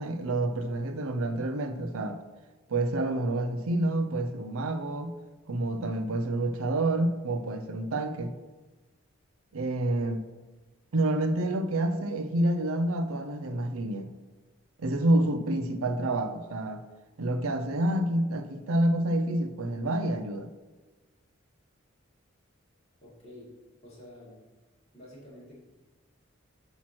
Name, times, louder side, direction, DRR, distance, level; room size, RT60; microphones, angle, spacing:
voice 1, 0.0-2.2 2.7-5.1 5.5-8.3 9.5-10.2 10.9-14.1 14.8-16.8 17.2-20.5, right 1 dB, 85° right, 9 dB, 0.6 m, -28 dB
voice 2, 23.0-23.6 23.8-24.4 24.9-25.6, left 1 dB, 30° left, -7 dB, 2.3 m, -49 dB
8.5 x 3.0 x 6.0 m, 1.2 s
head